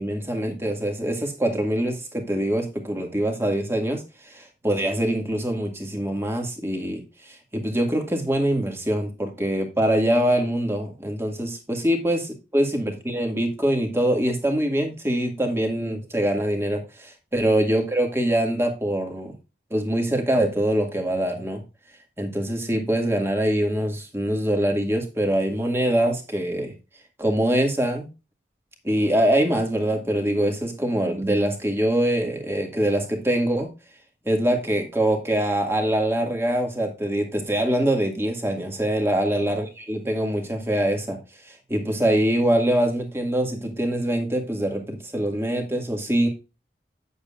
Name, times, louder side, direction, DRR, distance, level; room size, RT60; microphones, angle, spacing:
voice 1, 0.0-19.3 19.7-21.6 22.2-26.7 27.2-28.1 28.8-33.7 34.3-41.2 41.4-46.3, right 1 dB, 15° right, 3 dB, 2.0 m, -24 dB
9.3 x 8.0 x 2.5 m, 0.28 s
head